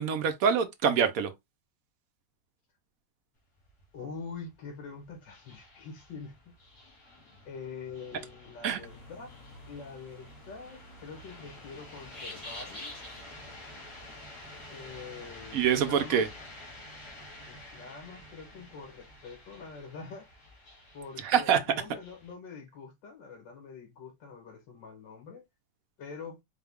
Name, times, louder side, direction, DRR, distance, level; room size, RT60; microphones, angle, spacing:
voice 1, 0.0-1.3 8.6-8.8 15.5-16.3 21.2-21.6, right 7 dB, 65° right, 0.9 m, -25 dB
sound 1, 3.4-22.3, left 1 dB, 65° left, 2.1 m, -50 dB
voice 2, 3.9-6.5 7.5-12.9 14.7-16.2 17.5-20.3 20.9-25.4 26.0-26.4, left 5 dB, 80° left, 2.1 m, -45 dB
sound 2, 8.7-16.7, left 1 dB, 25° left, 1.3 m, -50 dB
4.7 x 2.3 x 3.4 m
omnidirectional pair, 2.0 m